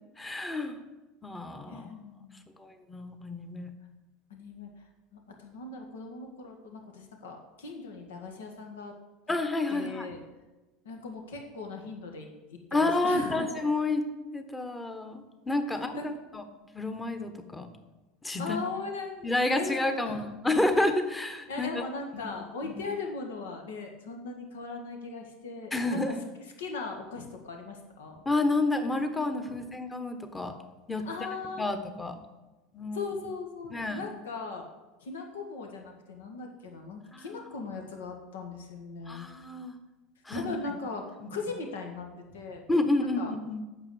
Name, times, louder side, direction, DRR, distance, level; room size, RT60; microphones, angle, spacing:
voice 1, 0.2-0.8 1.2-1.9 2.6-3.7 9.3-10.1 12.7-14.0 14.3-15.9 16.3-16.4 16.7-17.7 18.2-18.6 19.2-21.8 22.1-22.3 22.6-22.8 25.7-26.2 28.2-30.6 30.9-31.1 31.6-32.2 32.7-33.1 33.7-34.0 37.1-37.5 39.1-39.8 40.2-40.8 41.2-41.3 42.7-43.6, left 2 dB, 15° left, 7 dB, 1.4 m, -30 dB
voice 2, 1.7-2.5 4.3-4.7 5.1-8.9 9.3-9.4 9.7-10.2 10.8-13.5 15.7-16.1 18.4-19.3 19.6-20.2 21.5-26.1 26.6-28.2 29.5-29.6 31.0-31.6 32.9-34.6 35.0-39.3 40.3-42.1 42.3-42.6 43.2-43.3, left 4 dB, 70° left, 3 dB, 1.7 m, -39 dB
8.8 x 6.9 x 7.8 m, 1.1 s
figure-of-eight pair, 75°, 0 cm